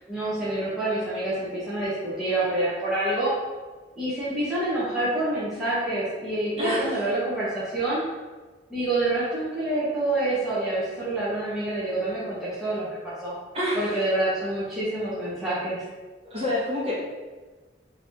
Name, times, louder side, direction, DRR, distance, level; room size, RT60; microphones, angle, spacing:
voice 1, 0.1-3.3 4.0-8.0 8.7-13.4 13.7-15.8, right 2 dB, ahead, -11 dB, 0.8 m, -27 dB
voice 2, 6.6-7.1 13.5-14.0 16.3-16.9, left 1 dB, 30° right, -8 dB, 1.1 m, -28 dB
3.3 x 2.7 x 3.4 m, 1.3 s
head